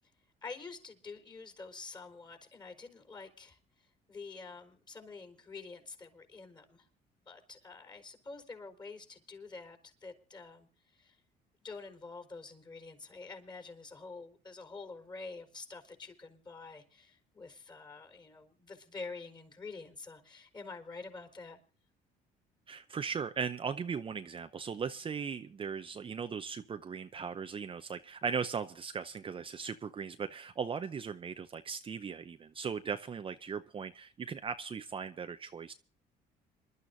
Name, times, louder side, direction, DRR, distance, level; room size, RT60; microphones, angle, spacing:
voice 1, 0.4-6.9 7.3-11.2 11.6-21.6, left 4 dB, 25° left, 6 dB, 4.5 m, -47 dB
voice 2, 22.7-35.7, right 6 dB, 30° right, 9 dB, 0.7 m, -38 dB
27.0 x 12.0 x 2.7 m, 0.39 s
cardioid pair, 110°, 17 cm